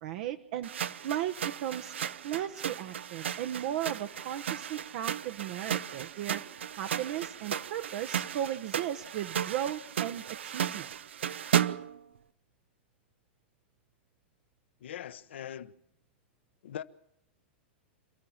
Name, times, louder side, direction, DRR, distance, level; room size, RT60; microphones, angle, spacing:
voice 1, 0.0-0.7 1.0-1.9 2.2-6.4 6.7-10.9, right 11 dB, 60° right, 1.0 m, -36 dB
sound 1, 0.6-12.0, right 9 dB, 85° right, 0.8 m, -35 dB
voice 2, 14.8-15.7 16.6-16.8, left 10 dB, 80° left, 1.1 m, -41 dB
27.5 x 14.0 x 7.3 m
hypercardioid pair, 115°, 6 cm